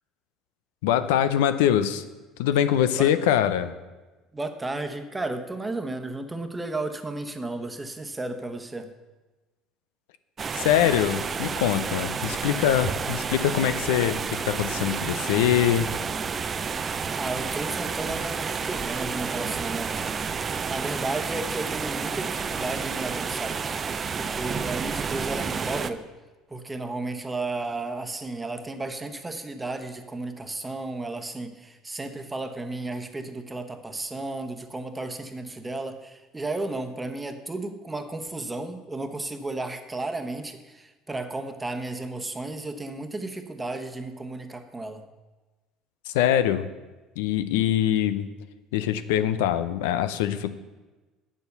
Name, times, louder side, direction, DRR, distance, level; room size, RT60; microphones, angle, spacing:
voice 1, 0.8-2.0 2.4-3.7 10.5-15.9 46.1-46.7 47.2-48.3 48.7-50.5, left 10 dB, 85° left, 12 dB, 0.5 m, -23 dB
voice 2, 4.3-8.9 16.4-20.0 20.7-26.1 26.5-45.1, right 2 dB, 15° right, 7 dB, 1.0 m, -33 dB
sound 1, 10.4-25.9, right 6 dB, 35° right, 0.5 m, -30 dB
8.0 x 7.1 x 6.7 m, 1.2 s
supercardioid pair, 85°, 0 cm